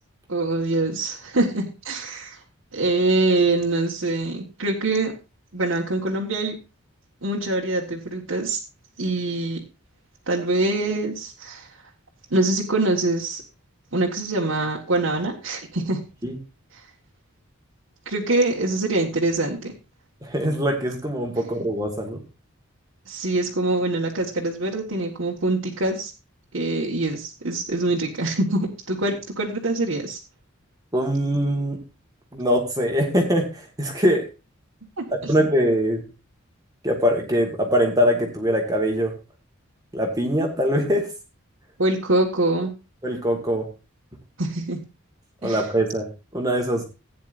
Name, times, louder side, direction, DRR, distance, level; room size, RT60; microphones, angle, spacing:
voice 1, 0.3-2.4 2.7-5.1 5.5-6.6 7.2-8.6 9.0-9.6 10.3-11.7 12.3-13.4 13.9-16.0 18.0-19.7 23.1-26.1 26.5-30.2 35.0-35.3 41.8-42.7 44.4-44.8 45.4-45.6, right 2 dB, 70° right, -4 dB, 1.6 m, -24 dB
voice 2, 20.2-22.2 30.9-31.8 32.3-34.2 35.3-36.1 36.8-39.1 39.9-41.1 43.0-43.7 45.4-46.1 46.3-46.8, equal, 20° right, 2 dB, 1.7 m, -22 dB
16.0 x 9.4 x 2.5 m, 0.29 s
head